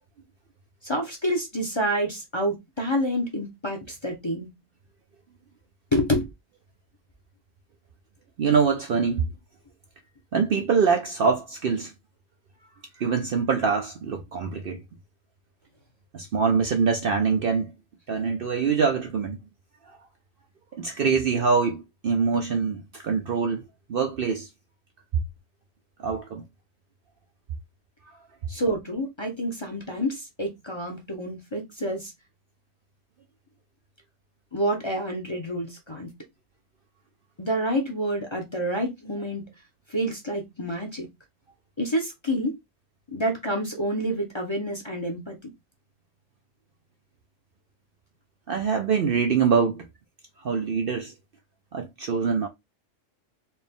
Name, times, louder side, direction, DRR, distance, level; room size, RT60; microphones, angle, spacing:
voice 1, 0.8-4.5 5.9-6.3 28.5-32.1 34.5-36.1 37.4-39.5 39.9-41.1 41.8-42.5 43.1-45.5, equal, 25° left, 0.7 m, -28 dB
voice 2, 8.4-9.3 10.3-11.9 13.0-14.8 16.1-17.7 18.1-19.4 20.8-23.6 23.9-24.5 26.0-26.4 48.5-49.9 50.4-51.1 51.7-52.5, right 5 dB, 60° right, 0.6 m, -24 dB
4.3 x 2.3 x 3.5 m
omnidirectional pair, 1.3 m